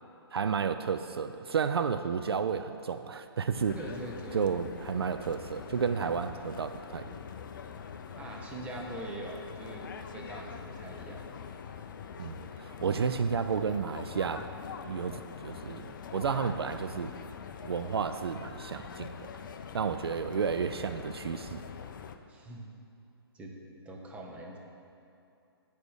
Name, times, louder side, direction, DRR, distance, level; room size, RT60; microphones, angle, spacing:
voice 1, 0.3-3.8 4.3-7.2 12.2-14.5 14.8-17.1 17.6-19.1 19.7-21.6, right 6 dB, 70° right, 9 dB, 0.4 m, -32 dB
sound 1, 3.5-22.2, left 7 dB, 50° left, 0.5 m, -44 dB
voice 2, 3.7-4.5 8.1-9.9 10.1-11.2 12.8-13.2 22.3-22.7 23.3-24.6, right 2 dB, 10° right, -1 dB, 0.8 m, -43 dB
8.4 x 5.0 x 6.3 m, 2.7 s
figure-of-eight pair, 135°, 13 cm